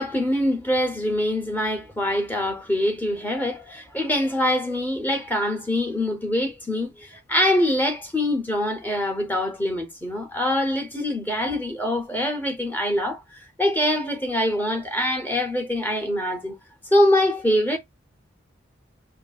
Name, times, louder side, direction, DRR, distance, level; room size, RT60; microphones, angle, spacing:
voice 1, 0.0-16.6 16.9-17.8, left 1 dB, 10° left, 0.6 m, -24 dB
5.7 x 2.6 x 2.3 m
head